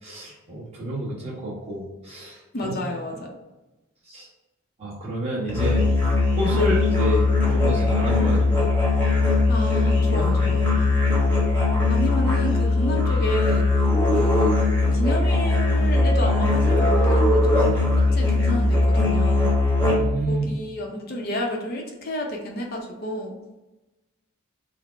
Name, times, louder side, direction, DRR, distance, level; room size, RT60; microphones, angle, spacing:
voice 1, 0.0-2.7 4.1-4.3 4.8-5.8 6.4-8.7 10.1-10.8 19.8-20.5, equal, 30° right, -6 dB, 1.2 m, -29 dB
voice 2, 2.5-3.3 6.5-6.7 8.2-8.4 9.5-10.7 11.9-13.7 14.1-14.6 14.9-17.6 18.0-19.6 20.3-23.4, equal, 45° left, 1 dB, 0.6 m, -30 dB
Musical instrument, 5.5-20.2, left 2 dB, 10° left, 1.0 m, -20 dB
3.9 x 2.1 x 4.4 m, 1.1 s
head